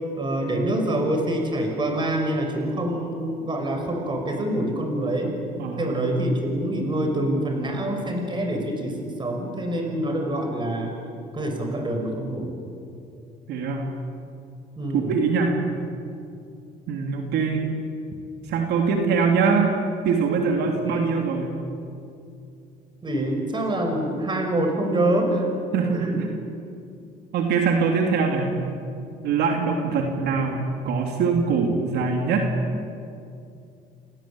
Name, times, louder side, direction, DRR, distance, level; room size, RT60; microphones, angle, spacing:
voice 1, 0.2-5.4 5.8-10.9 11.3-12.5 14.8-15.1 20.6-21.1 23.0-25.5 25.9-26.3, right 1 dB, 30° right, 4 dB, 6.0 m, -26 dB
voice 2, 5.6-6.4 13.5-14.0 15.1-15.6 16.9-17.6 18.5-19.8 20.0-21.6 25.7-26.3 27.3-28.5 29.2-32.6, right 5 dB, 80° right, 2 dB, 3.2 m, -23 dB
29.5 x 18.5 x 8.9 m, 2.5 s
cardioid pair, 110°, 17 cm